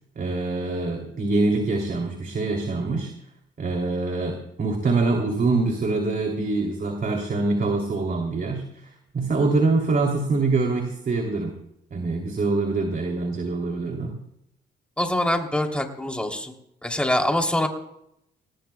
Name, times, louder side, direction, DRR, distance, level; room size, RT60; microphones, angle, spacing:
voice 1, 0.1-3.1 3.6-8.9 9.1-11.5 11.9-14.2, right 3 dB, 45° right, 2 dB, 2.9 m, -24 dB
voice 2, 15.0-16.5 16.8-17.7, left 1 dB, 5° left, 3 dB, 3.0 m, -24 dB
22.5 x 19.0 x 2.3 m, 0.79 s
cardioid pair, 90°, 20 cm